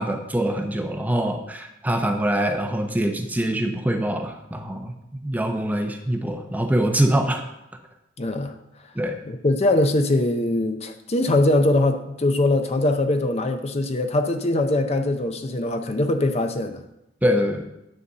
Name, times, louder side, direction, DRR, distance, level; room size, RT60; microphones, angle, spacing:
voice 1, 0.0-7.4 8.9-9.2 17.2-17.6, right 1 dB, 10° right, 5 dB, 0.7 m, -24 dB
voice 2, 8.2-8.5 9.3-16.8, left 2 dB, 35° left, 6 dB, 0.6 m, -22 dB
9.8 x 4.1 x 6.7 m, 0.86 s
head